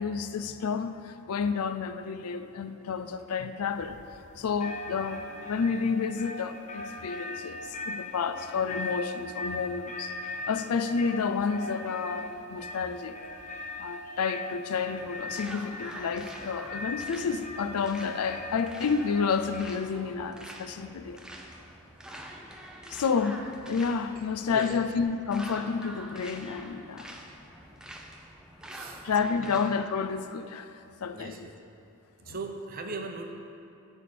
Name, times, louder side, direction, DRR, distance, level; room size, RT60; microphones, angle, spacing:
voice 1, 0.0-4.0 4.4-10.1 10.5-13.2 13.8-21.2 22.9-27.1 29.0-30.7 31.0-31.5 32.3-32.4, left 5 dB, 85° left, 10 dB, 0.4 m, -30 dB
sound 1, 3.7-4.3 4.6-19.6, left 2 dB, 35° left, 0.7 m, -40 dB
sound 2, 15.0-29.9, right 1 dB, 5° right, 0.5 m, -45 dB
voice 2, 28.7-29.1 29.4-29.5 31.1-31.5 32.2-33.3, right 3 dB, 40° right, 4 dB, 0.7 m, -39 dB
10.5 x 3.6 x 6.8 m, 2.6 s
head